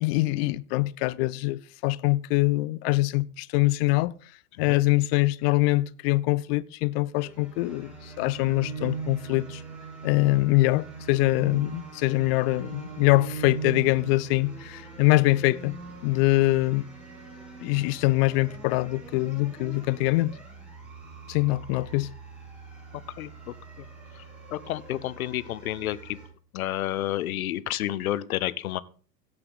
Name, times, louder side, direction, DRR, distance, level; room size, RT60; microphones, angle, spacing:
voice 1, 0.0-4.1 4.6-9.6 10.0-15.8 16.0-16.9 17.6-20.3 21.3-22.1, left 20 dB, 40° left, 0.6 m, -24 dB
sound 1, 7.2-26.3, right 4 dB, ahead, 6.2 m, -41 dB
voice 2, 24.5-26.2 26.5-28.8, left 13 dB, 60° left, 1.0 m, -30 dB
17.0 x 6.8 x 4.0 m
figure-of-eight pair, 90°, 48 cm